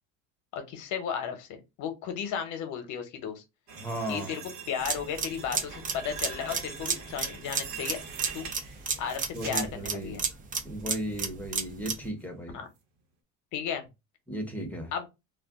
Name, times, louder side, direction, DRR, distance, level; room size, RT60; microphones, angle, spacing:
voice 1, 0.5-3.4 4.1-4.4 4.7-8.0 8.3-8.5 9.0-10.2 12.5-12.7 13.5-13.8 14.9-15.1, left 7 dB, 65° left, 0.9 m, -34 dB
sound 1, 3.7-10.2 10.6-11.2 11.6-11.8 12.2-12.3, right 6 dB, 80° right, 1.0 m, -43 dB
voice 2, 3.8-4.4 9.3-10.2 10.6-12.6 14.3-14.9, right 1 dB, 5° left, 0.8 m, -35 dB
sound 2, 4.8-12.1, right 5 dB, 25° right, 0.5 m, -32 dB
2.4 x 2.2 x 3.5 m
cardioid pair, 115°, 32 cm